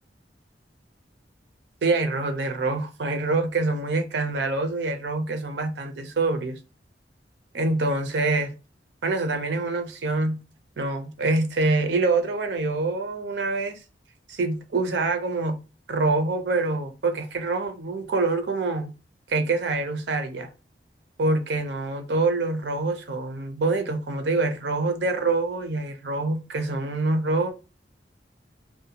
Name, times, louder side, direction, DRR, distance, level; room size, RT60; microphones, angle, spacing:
voice 1, 1.8-6.6 7.5-8.5 9.0-10.4 10.8-13.8 14.3-15.6 15.9-18.9 19.3-20.5 21.2-27.5, right 3 dB, 75° right, 0.5 m, -25 dB
2.6 x 2.1 x 2.7 m
head